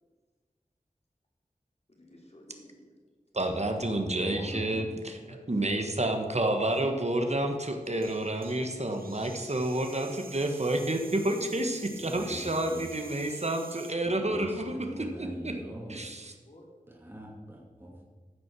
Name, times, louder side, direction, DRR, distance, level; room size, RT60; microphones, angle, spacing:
voice 1, 1.9-2.9 5.1-5.9 16.4-16.7, left 1 dB, 45° left, -1 dB, 3.1 m, -54 dB
voice 2, 3.3-5.1 5.5-14.8 15.2-15.5 15.9-16.3, right 1 dB, 50° right, 5 dB, 1.4 m, -29 dB
voice 3, 4.1-4.8 11.8-12.8 14.0-16.0 16.9-18.0, right 1 dB, 15° right, -3 dB, 2.3 m, -42 dB
sound 1, 7.8-14.0, right 4 dB, 85° right, 0.7 m, -49 dB
14.5 x 6.0 x 6.2 m, 1.5 s
wide cardioid pair, 55°, 15 cm